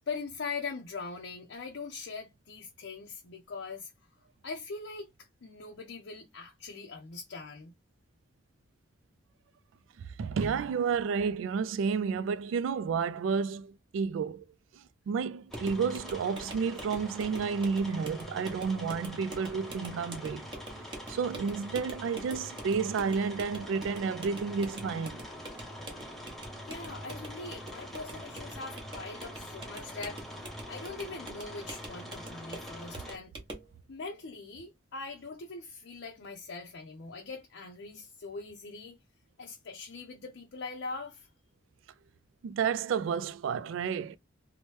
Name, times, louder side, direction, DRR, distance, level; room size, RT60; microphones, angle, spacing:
voice 1, 0.0-3.9 4.4-7.7 26.7-33.3 33.9-39.0 39.4-41.3, left 4 dB, 70° left, 0.5 m, -42 dB
voice 2, 10.0-14.4 14.7-20.5 21.1-25.2 42.4-44.2, right 5 dB, 85° right, 0.3 m, -31 dB
sound 1, 15.5-33.2, equal, ahead, 0.6 m, -44 dB
sound 2, 15.5-33.7, right 1 dB, 25° right, 0.8 m, -46 dB
2.9 x 2.1 x 3.0 m
head